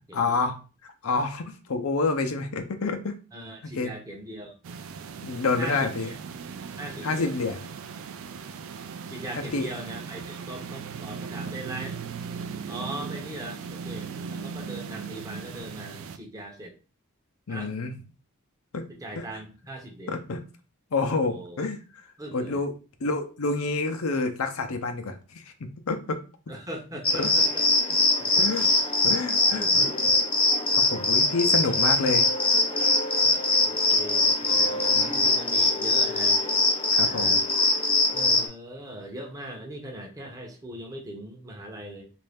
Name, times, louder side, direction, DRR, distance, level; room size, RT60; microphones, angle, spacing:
voice 1, 0.1-0.6 1.0-3.2 3.6-3.9 5.2-6.1 7.0-7.7 9.1-9.2 9.5-9.7 17.5-17.9 18.7-18.9 19.2-19.3 20.1-20.4 20.9-21.8 22.3-22.7 23.0-26.2 27.2-27.3 28.4-28.7 29.0-29.8 30.5-32.3 34.9-35.1 36.9-37.4, left 3 dB, 80° left, 6 dB, 0.6 m, -28 dB
voice 2, 3.3-4.6 5.6-6.2 6.8-7.4 9.1-12.0 12.7-16.7 17.5-17.8 18.9-20.2 21.2-21.6 22.2-22.6 26.5-27.6 28.2-28.5 29.5-29.8 31.6-31.8 33.6-36.4 37.0-37.4 38.1-42.1, right 1 dB, 15° right, 0 dB, 0.7 m, -40 dB
sound 1, 4.6-16.2, right 5 dB, 70° right, 0.3 m, -38 dB
sound 2, 27.0-38.5, left 2 dB, 25° left, 0.7 m, -22 dB
3.2 x 2.5 x 3.4 m, 0.34 s
head